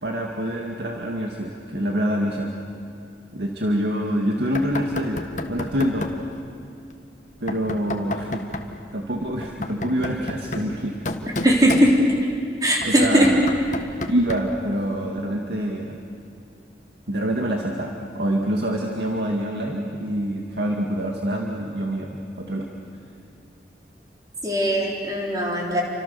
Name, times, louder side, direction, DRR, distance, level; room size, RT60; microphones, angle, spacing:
voice 1, 0.0-2.5 3.3-6.1 7.4-8.4 8.9-11.0 11.4-11.5 12.8-13.4 14.1-16.0 17.1-22.7, equal, 70° right, 0 dB, 2.1 m, -26 dB
Knock, 4.5-6.3 7.5-8.7 9.4-12.3 12.8-14.6, left 1 dB, 45° left, 1.5 m, -32 dB
voice 2, 11.4-11.9 12.6-13.3 24.4-25.8, equal, 20° right, -2 dB, 4.2 m, -19 dB
30.0 x 25.5 x 7.0 m, 2.5 s
head